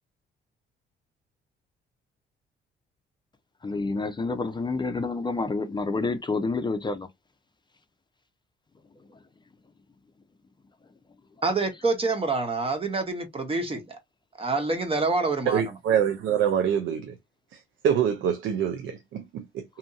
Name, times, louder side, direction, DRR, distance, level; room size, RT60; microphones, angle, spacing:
voice 1, 3.6-7.1, left 3 dB, 25° left, 0.5 m, -28 dB
voice 2, 11.4-14.0 14.4-15.6, right 3 dB, 30° right, 0.9 m, -27 dB
voice 3, 15.5-17.1 17.8-19.6, right 8 dB, 75° right, 0.5 m, -25 dB
2.8 x 2.6 x 2.3 m
cardioid pair, 90°, 20 cm